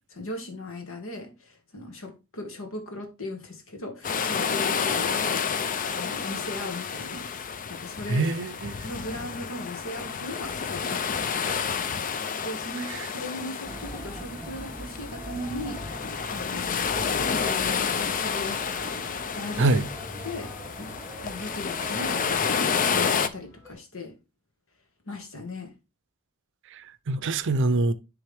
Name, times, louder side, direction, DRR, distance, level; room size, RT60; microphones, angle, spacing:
voice 1, 0.1-7.3 7.7-8.3 8.8-11.2 11.4-11.8 12.4-17.1 17.4-19.0 19.3-19.7 20.2-20.5 20.8-20.9 21.2-24.1 25.1-25.7, left 1 dB, 65° left, 1.7 m, -38 dB
sound 1, 4.0-23.3, left 6 dB, 40° left, 0.5 m, -30 dB
voice 2, 8.1-8.7 12.9-13.1 19.6-19.9 26.7-26.8 27.1-27.9, right 2 dB, 55° right, 0.5 m, -24 dB
sound 2, 13.6-22.5, right 1 dB, 10° right, 1.2 m, -43 dB
sound 3, 16.8-23.7, left 1 dB, 15° left, 3.4 m, -47 dB
10.0 x 3.6 x 3.4 m
head